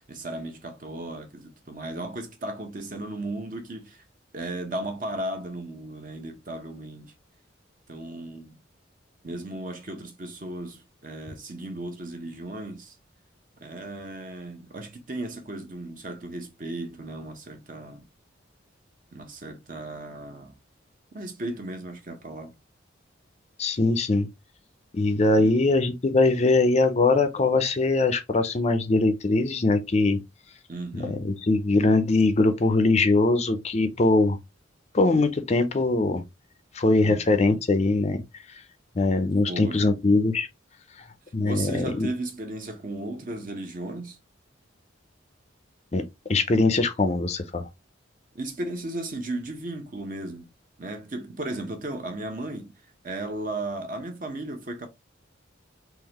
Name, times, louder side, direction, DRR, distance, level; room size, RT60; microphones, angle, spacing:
voice 1, 0.0-4.0 4.3-7.1 7.9-8.6 9.2-13.0 13.6-18.1 19.1-20.5 21.1-22.5 25.4-25.7 30.7-31.2 37.0-37.3 39.5-39.9 41.4-44.2 48.3-50.5 50.8-52.7 53.0-54.9, right 1 dB, 45° right, 0.9 m, -35 dB
voice 2, 23.6-24.3 24.9-30.2 30.9-34.4 34.9-36.2 36.7-38.2 39.0-40.5 41.3-42.1 45.9-46.0 46.3-47.6, left 2 dB, 35° left, 0.5 m, -22 dB
3.8 x 2.9 x 2.8 m
head